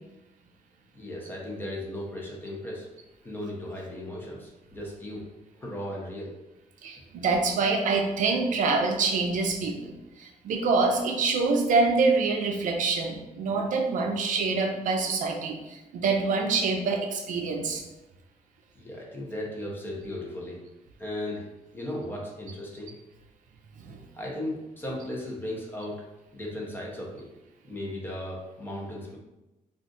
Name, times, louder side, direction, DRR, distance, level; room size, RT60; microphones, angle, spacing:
voice 1, 0.9-2.9 3.2-5.3 5.6-6.3 18.7-20.6 21.0-22.9 24.1-26.0 26.3-27.3 27.7-29.2, left 1 dB, 15° left, -3 dB, 0.7 m, -36 dB
voice 2, 6.8-17.8 23.8-24.0, right 4 dB, 75° right, 3 dB, 0.5 m, -26 dB
2.4 x 2.4 x 3.8 m, 1.0 s
wide cardioid pair, 150°, 14 cm